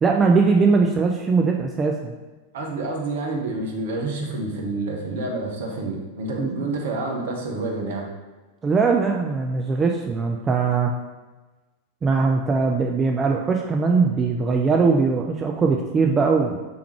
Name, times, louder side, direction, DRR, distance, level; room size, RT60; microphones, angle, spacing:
voice 1, 0.0-2.1 6.4-6.5 8.6-10.9 12.0-16.6, right 4 dB, 20° right, 2 dB, 0.3 m, -20 dB
voice 2, 2.5-8.1, right 2 dB, 55° right, 0 dB, 0.9 m, -28 dB
4.5 x 3.4 x 3.3 m, 1.2 s
figure-of-eight pair, 90°, 0 cm